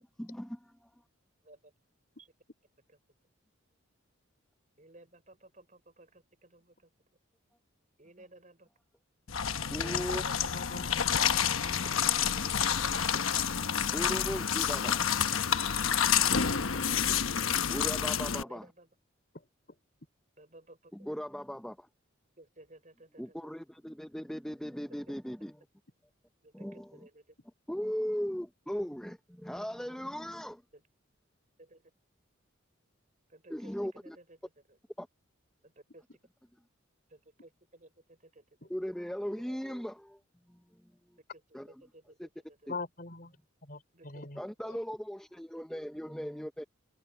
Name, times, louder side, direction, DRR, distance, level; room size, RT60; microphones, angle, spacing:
voice 1, 0.2-0.9 9.7-10.2 13.9-15.0 17.7-18.7 20.9-21.9 23.2-25.5 26.5-27.1 27.7-30.6 33.5-34.2 35.0-35.1 38.7-40.0 40.5-40.6 41.5-41.7 42.2-42.3 42.7-42.8 44.4-46.6, equal, 5° left, 0.6 m, -38 dB
voice 2, 1.4-1.7 2.2-2.3 4.8-6.9 8.0-8.7 10.0-10.5 11.9-12.1 14.7-15.6 18.3-18.9 20.4-21.1 22.4-23.5 26.4-27.3 27.9-28.0 29.9-30.0 30.7-30.8 31.6-31.8 33.3-34.8 35.6-36.0 37.1-38.7 39.5-39.7 41.3-41.4 41.7-42.7 43.9-44.2 45.6-45.8, right 2 dB, 35° right, 5.4 m, -56 dB
sound 1, 9.3-18.4, left 8 dB, 80° left, 1.0 m, -29 dB
voice 3, 9.8-11.1 11.5-12.1 19.3-19.5 42.7-43.4 43.6-44.4 44.7-44.8, left 3 dB, 45° left, 4.0 m, -43 dB
head